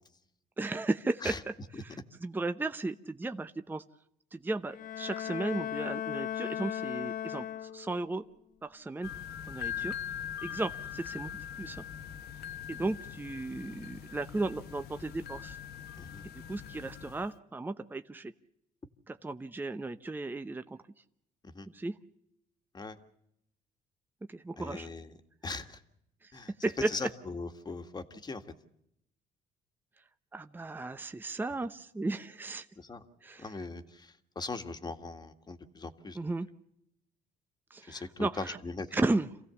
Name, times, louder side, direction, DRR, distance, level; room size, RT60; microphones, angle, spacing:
voice 1, 0.6-3.8 4.3-7.5 7.7-8.2 8.6-9.1 9.5-9.9 10.4-11.8 12.7-15.6 16.5-18.3 19.1-20.8 21.7-22.0 24.3-24.9 26.6-27.1 30.3-32.7 33.2-33.5 36.1-36.5 37.7-38.6 38.9-39.3, right 2 dB, 10° right, 9 dB, 0.8 m, -35 dB
Bowed string instrument, 4.7-8.1, left 10 dB, 50° left, 1.0 m, -37 dB
sound 1, 9.0-17.3, left 9 dB, 70° left, 1.2 m, -42 dB
voice 2, 24.6-25.1 25.4-25.8 26.3-26.5 26.9-28.4 32.8-33.0 33.4-36.2 37.9-38.9, left 3 dB, 25° left, 8 dB, 1.8 m, -40 dB
27.5 x 16.5 x 7.0 m, 0.78 s
cardioid pair, 110°, 17 cm